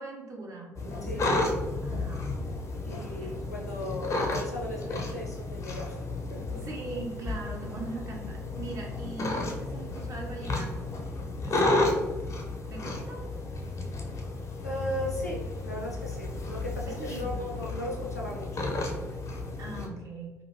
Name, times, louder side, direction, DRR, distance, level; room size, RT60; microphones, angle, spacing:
voice 1, 0.0-1.5 1.8-2.3 3.2-3.4 6.5-10.9 11.4-11.7 12.7-13.2 16.8-17.7 19.6-20.3, right 2 dB, 35° right, -1 dB, 0.7 m, -40 dB
sound 1, 0.8-19.9, left 2 dB, 35° left, 0.6 m, -32 dB
voice 2, 2.9-6.0 6.3-6.5 11.6-11.8 14.6-18.7, left 1 dB, 90° left, -2 dB, 0.4 m, -37 dB
2.9 x 2.5 x 2.8 m, 1.2 s
figure-of-eight pair, 50°, 8 cm